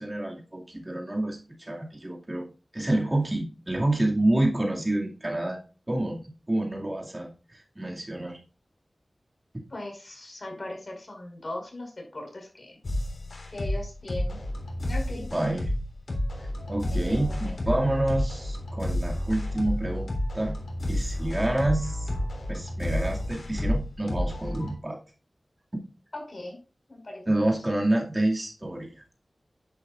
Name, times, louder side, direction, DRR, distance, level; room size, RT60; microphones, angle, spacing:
voice 1, 0.0-2.4 2.7-5.6 5.9-8.4 15.2-15.7 16.4-20.1 20.3-20.6 20.9-22.1 22.5-25.0 27.3-29.0, right 1 dB, 25° right, -1 dB, 2.3 m, -28 dB
voice 2, 9.7-12.8 13.5-14.4 14.8-15.3 16.9-17.5 26.1-26.6 26.9-27.2, left 1 dB, 45° left, 1 dB, 5.1 m, -39 dB
sound 1, 12.8-24.7, left 1 dB, 80° left, 3.4 m, -30 dB
11.0 x 10.5 x 2.5 m, 0.34 s
wide cardioid pair, 85°, 0 cm